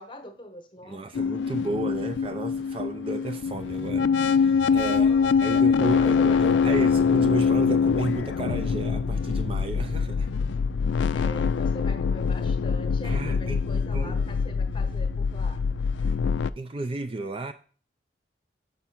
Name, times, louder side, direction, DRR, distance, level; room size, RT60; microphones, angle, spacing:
voice 1, 0.0-1.1 4.7-6.8 11.1-15.6, left 1 dB, 25° left, 1.0 m, -43 dB
voice 2, 0.8-5.1 5.4-10.3 13.0-13.6 13.9-14.2 16.0-16.1 16.6-17.5, right 2 dB, 30° right, 0.4 m, -32 dB
sound 1, 1.1-16.5, left 6 dB, 75° left, 0.3 m, -24 dB
6.0 x 5.5 x 5.8 m
head